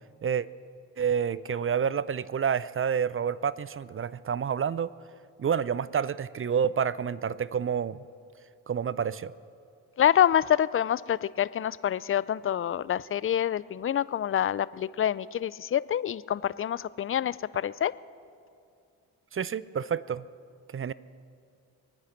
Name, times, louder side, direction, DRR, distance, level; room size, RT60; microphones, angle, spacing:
voice 1, 1.0-4.9 5.4-8.0 8.7-9.3 19.3-20.2 20.7-20.9, right 7 dB, 30° right, 19 dB, 0.5 m, -29 dB
voice 2, 10.0-17.9, left 10 dB, 30° left, 19 dB, 0.4 m, -26 dB
22.5 x 9.7 x 5.9 m, 2.4 s
hypercardioid pair, 45°, 48 cm